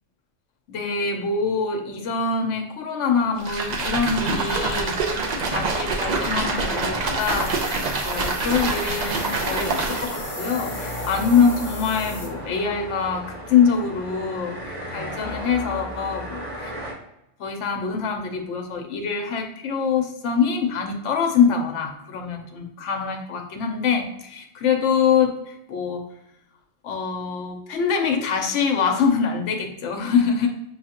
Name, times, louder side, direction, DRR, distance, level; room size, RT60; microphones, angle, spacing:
voice 1, 0.7-5.2 5.5-7.7 8.0-16.7 17.4-26.0 26.8-30.5, left 6 dB, 75° left, 3 dB, 1.0 m, -24 dB
sound 1, 3.4-10.3, right 3 dB, 50° right, 0.6 m, -26 dB
sound 2, 4.5-16.9, right 1 dB, 70° right, 1.8 m, -35 dB
sound 3, 7.2-12.3, left 3 dB, 55° left, 1.1 m, -38 dB
6.3 x 2.3 x 2.8 m, 0.83 s
omnidirectional pair, 1.3 m